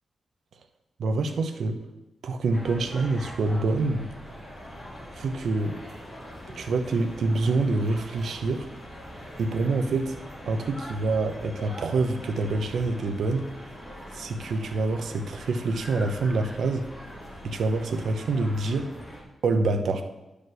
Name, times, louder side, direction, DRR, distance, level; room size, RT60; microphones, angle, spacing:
voice 1, 1.0-1.8 2.2-4.1 5.2-5.8 6.6-8.7 9.4-10.2 10.5-13.5 14.1-16.9 17.4-18.9 19.4-20.0, right 3 dB, 65° right, 6 dB, 0.8 m, -26 dB
sound 1, 2.5-19.2, equal, 20° left, 2.5 m, -42 dB
9.6 x 5.1 x 6.3 m, 1.0 s
wide cardioid pair, 180°, 0 cm